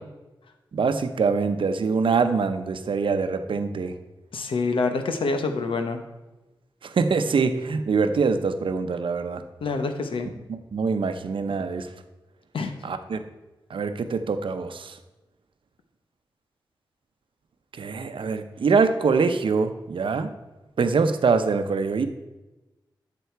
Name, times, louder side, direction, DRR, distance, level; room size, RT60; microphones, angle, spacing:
voice 1, 0.7-3.9 6.8-9.4 10.5-11.9 12.8-13.2 13.7-14.9 17.8-20.3 20.8-22.1, right 5 dB, 75° right, 8 dB, 0.8 m, -24 dB
voice 2, 4.3-6.0 9.6-10.3 12.5-12.7, left 3 dB, 90° left, 7 dB, 1.0 m, -26 dB
11.5 x 6.9 x 4.6 m, 1.1 s
cardioid pair, 60°, 9 cm